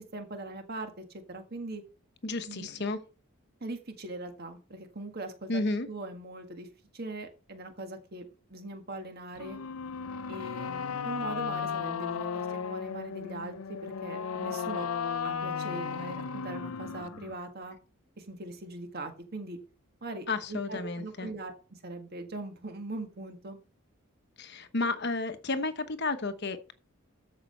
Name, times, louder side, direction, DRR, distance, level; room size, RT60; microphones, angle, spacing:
voice 1, 0.1-1.8 2.5-2.9 3.6-6.7 6.9-9.6 10.3-14.9 15.2-17.8 18.2-19.6 20.0-23.6, right 2 dB, 45° right, 1.7 m, -41 dB
voice 2, 2.2-3.0 5.5-5.9 20.3-21.3 24.4-26.7, left 3 dB, 50° left, 1.0 m, -32 dB
sound 1, 9.4-17.3, left 6 dB, 85° left, 0.6 m, -35 dB
13.5 x 5.6 x 4.3 m
head